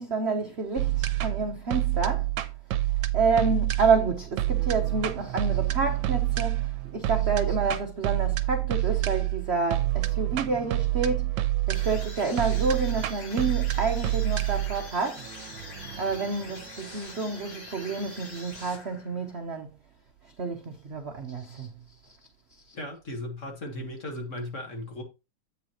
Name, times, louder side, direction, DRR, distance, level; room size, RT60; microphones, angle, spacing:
voice 1, 0.0-2.3 3.1-11.3 11.7-15.3 16.0-19.7 20.4-21.7 22.0-22.1 22.7-22.8, right 4 dB, 50° right, 0.8 m, -29 dB
sound 1, 0.8-17.9, right 16 dB, 80° right, 1.4 m, -28 dB
sound 2, 11.7-19.3, left 2 dB, 70° left, 4.2 m, -44 dB
voice 2, 22.7-25.0, left 1 dB, 40° left, 1.8 m, -36 dB
8.2 x 7.0 x 3.0 m
omnidirectional pair, 2.1 m